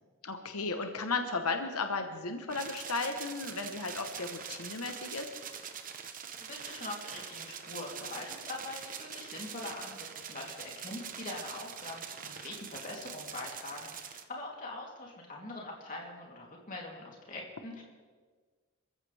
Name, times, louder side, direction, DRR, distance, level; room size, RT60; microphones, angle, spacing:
voice 1, 0.2-5.3, left 3 dB, 90° left, 6 dB, 1.1 m, -35 dB
sound 1, 2.5-14.2, right 7 dB, 40° right, 0.9 m, -44 dB
voice 2, 6.4-17.8, left 2 dB, 35° left, -2 dB, 3.2 m, -43 dB
26.5 x 15.0 x 3.5 m, 1.5 s
head